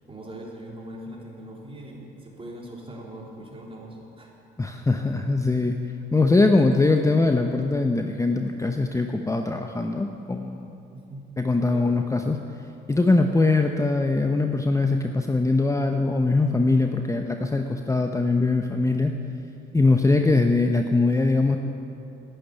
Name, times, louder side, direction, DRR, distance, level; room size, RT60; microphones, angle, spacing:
voice 1, 0.1-4.3 10.9-11.3 11.7-11.9, right 1 dB, 25° right, -2 dB, 3.5 m, -41 dB
voice 2, 4.6-5.8 6.1-10.7 11.4-12.4 12.9-19.1 19.7-21.6, left 3 dB, 15° left, 4 dB, 0.8 m, -22 dB
10.0 x 10.0 x 9.4 m, 2.8 s
supercardioid pair, 65°, 20 cm